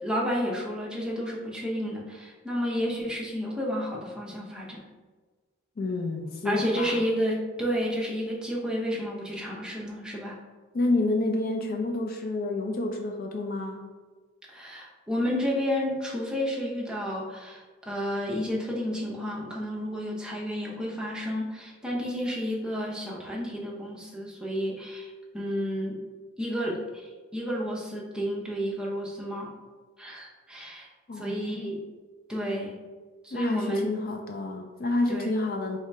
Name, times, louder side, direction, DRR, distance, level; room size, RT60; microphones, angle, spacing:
voice 1, 0.0-4.9 6.4-10.4 14.5-26.0 26.4-29.5 30.0-30.9 31.1-31.9 32.3-32.8 33.2-33.9 35.1-35.4, equal, 5° right, -4 dB, 0.7 m, -31 dB
voice 2, 5.8-7.0 10.7-13.8 31.1-31.8 33.3-35.8, left 2 dB, 45° left, 3 dB, 0.4 m, -29 dB
3.2 x 2.8 x 4.5 m, 1.4 s
head